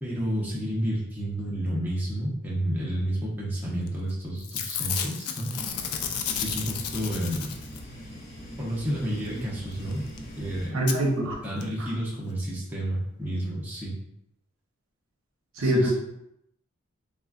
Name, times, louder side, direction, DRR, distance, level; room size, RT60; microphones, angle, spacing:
voice 1, 0.0-5.6 6.4-7.5 8.6-10.0 10.4-10.8 11.4-14.0 15.6-15.9, right 1 dB, 10° right, -6 dB, 0.5 m, -30 dB
Packing tape duct tape / Tearing, 3.9-4.1 4.4-8.0 9.9-10.0 10.2-10.3 10.9-11.0 11.6-11.7 11.9-12.0, left 8 dB, 85° left, 0.3 m, -32 dB
sound 1, 5.5-10.7, equal, 70° left, 0.9 m, -42 dB
voice 2, 10.7-11.3 15.6-15.9, right 1 dB, 70° right, 0 dB, 0.6 m, -23 dB
3.3 x 2.0 x 2.3 m, 0.79 s
head